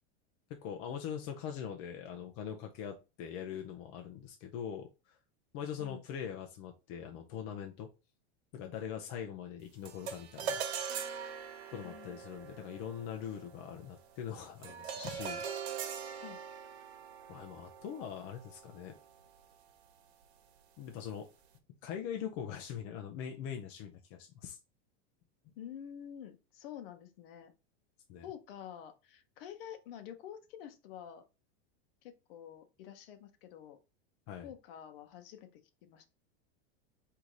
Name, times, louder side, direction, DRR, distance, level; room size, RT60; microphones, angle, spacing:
voice 1, 0.5-5.2 5.5-7.9 8.5-10.6 11.7-15.5 17.3-19.0 20.8-21.3 21.8-24.6 28.1-28.3 34.3-34.5, left 8 dB, 40° left, 0.6 m, -42 dB
sound 1, 9.9-19.3, right 7 dB, 85° right, 1.1 m, -42 dB
voice 2, 11.6-12.2 16.2-16.4 25.6-27.5 28.2-31.2 32.0-33.8 34.4-36.1, left 9 dB, 60° left, 1.0 m, -48 dB
4.8 x 2.8 x 3.8 m
supercardioid pair, 160°, 32 cm